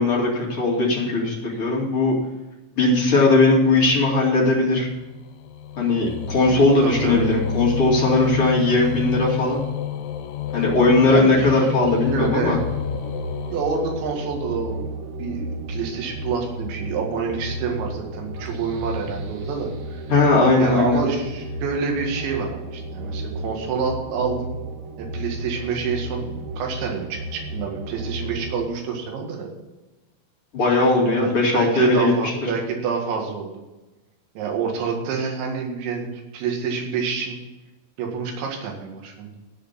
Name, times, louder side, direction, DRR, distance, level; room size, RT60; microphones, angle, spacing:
voice 1, 0.0-2.2 2.8-4.9 5.8-9.6 10.5-12.6 20.1-21.0 30.5-32.3, left 2 dB, 35° left, -5 dB, 2.5 m, -19 dB
sound 1, 3.7-14.7, left 8 dB, 85° left, 3.4 m, -30 dB
voice 2, 6.5-7.3 11.0-11.7 12.1-12.6 13.5-14.9 15.2-20.0 20.6-24.5 25.0-29.5 31.2-33.5 34.4-37.4 38.0-39.3, right 5 dB, 65° right, 1 dB, 3.9 m, -27 dB
sound 2, 11.5-28.7, right 2 dB, 80° right, 4.0 m, -33 dB
14.0 x 5.0 x 8.3 m, 1.1 s
omnidirectional pair, 6.0 m